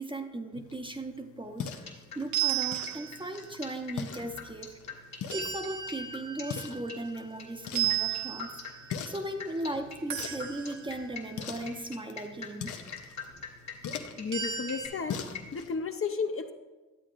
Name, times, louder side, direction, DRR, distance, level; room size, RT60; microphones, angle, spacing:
voice 1, 0.0-4.8 5.1-8.6 9.1-12.7, right 1 dB, 15° right, 5 dB, 0.7 m, -37 dB
sound 1, 0.5-15.8, left 7 dB, 80° left, 0.6 m, -43 dB
sound 2, 1.7-15.6, left 6 dB, 60° left, 1.5 m, -44 dB
sound 3, 2.3-3.5 5.3-7.3 7.8-9.0 10.1-11.1 14.3-14.9, right 11 dB, 70° right, 0.7 m, -34 dB
voice 2, 14.2-15.2 15.5-16.5, left 5 dB, 45° left, 5 dB, 0.7 m, -32 dB
9.9 x 8.2 x 2.5 m, 1.2 s
supercardioid pair, 50°, 30 cm